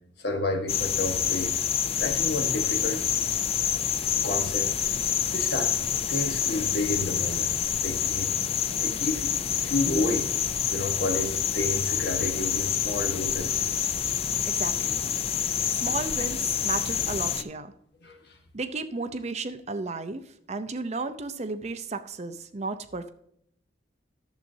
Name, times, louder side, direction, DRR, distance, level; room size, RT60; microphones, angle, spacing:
voice 1, 0.2-1.5 2.0-3.0 4.2-4.7 5.3-7.5 7.8-8.3 8.7-9.3 9.6-10.3 10.7-13.5 18.0-18.3, left 2 dB, 60° left, 4 dB, 1.3 m, -30 dB
sound 1, 0.7-17.4, left 9 dB, 30° left, 0.3 m, -27 dB
voice 2, 14.4-15.0 15.7-17.7 18.5-23.1, right 3 dB, 35° right, 10 dB, 0.6 m, -34 dB
11.0 x 7.3 x 2.7 m, 0.69 s
head